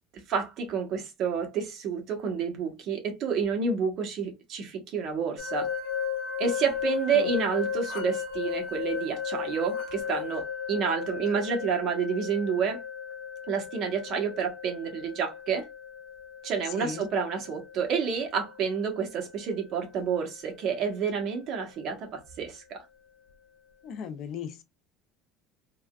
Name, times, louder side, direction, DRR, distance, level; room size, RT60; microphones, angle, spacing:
voice 1, 0.3-5.7 6.4-12.8 13.5-15.7 16.4-22.8, right 6 dB, 45° right, 1.0 m, -29 dB
sound 1, 5.4-20.2, left 7 dB, 85° left, 1.1 m, -36 dB
voice 2, 16.6-17.1 23.8-24.6, left 7 dB, 50° left, 0.4 m, -37 dB
3.4 x 2.2 x 2.3 m
cardioid pair, 160°, 0 cm